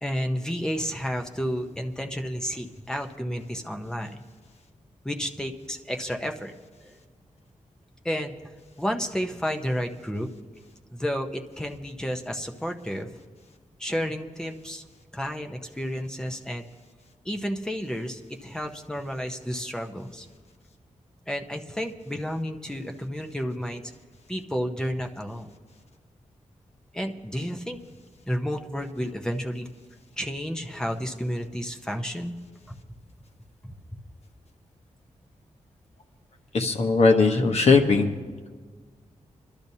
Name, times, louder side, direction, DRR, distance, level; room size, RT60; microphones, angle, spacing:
voice 1, 0.0-4.2 5.0-6.5 6.8-6.9 8.0-8.3 8.8-10.3 10.9-13.1 13.8-14.8 15.1-16.7 17.2-20.3 21.3-23.8 24.3-25.5 26.9-27.8 28.3-29.7 30.2-32.4 33.6-34.0, equal, 5° left, 3 dB, 0.7 m, -31 dB
voice 2, 36.5-38.1, left 4 dB, 55° left, 3 dB, 1.1 m, -19 dB
26.5 x 12.0 x 2.8 m, 1.5 s
wide cardioid pair, 180°, 13 cm